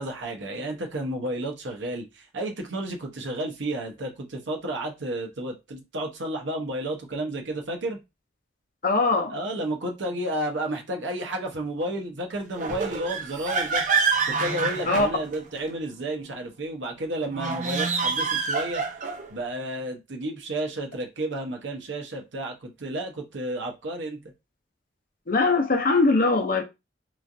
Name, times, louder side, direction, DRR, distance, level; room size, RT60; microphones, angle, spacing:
voice 1, 0.0-8.0 9.3-13.8 14.3-18.9 19.3-24.2, right 1 dB, 75° right, 0.8 m, -32 dB
voice 2, 8.8-9.3 14.9-15.1 25.3-26.6, left 3 dB, 45° left, 0.6 m, -21 dB
sound 1, 12.6-15.7 17.3-19.3, right 5 dB, 40° right, 0.5 m, -27 dB
3.1 x 2.4 x 2.5 m
head